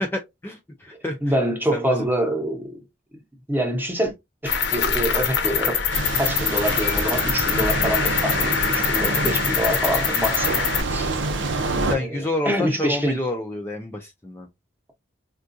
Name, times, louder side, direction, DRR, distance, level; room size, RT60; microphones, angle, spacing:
voice 1, 0.0-1.3 1.7-1.8 11.9-14.5, left 1 dB, 10° left, 0.4 m, -29 dB
voice 2, 1.2-2.8 3.1-3.2 3.5-4.1 4.4-11.1 11.9-13.2, right 1 dB, 10° right, 0.8 m, -26 dB
Cricket, 4.5-10.8, left 7 dB, 65° left, 0.7 m, -24 dB
sound 1, 5.9-12.0, right 3 dB, 80° right, 0.6 m, -27 dB
3.6 x 2.4 x 2.5 m
head